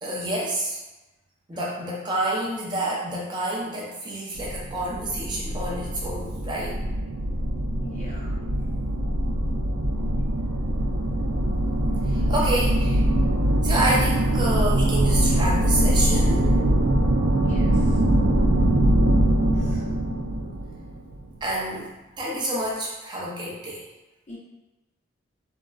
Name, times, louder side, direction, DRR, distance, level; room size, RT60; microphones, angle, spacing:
voice 1, 0.0-0.8 1.5-6.8 12.1-13.0 13.6-16.5 21.4-21.9 22.2-23.8, right 1 dB, 20° right, -4 dB, 0.5 m, -28 dB
sound 1, 4.3-21.4, right 1 dB, 85° right, 0.4 m, -22 dB
voice 2, 7.8-8.3 17.4-18.0 19.5-19.8 24.3-24.4, left 1 dB, 35° left, -6 dB, 0.4 m, -42 dB
3.6 x 2.0 x 2.3 m, 1.0 s
head